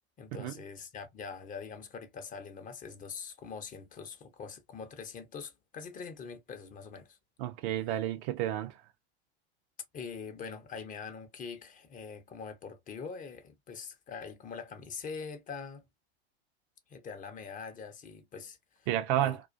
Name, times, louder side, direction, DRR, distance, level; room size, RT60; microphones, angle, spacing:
voice 1, 0.2-7.2 9.9-15.8 16.9-18.9 19.1-19.4, left 5 dB, 25° left, 0.5 m, -43 dB
voice 2, 7.4-8.8 18.9-19.4, right 12 dB, 50° right, 0.5 m, -31 dB
2.3 x 2.3 x 2.4 m
hypercardioid pair, 95°, 33 cm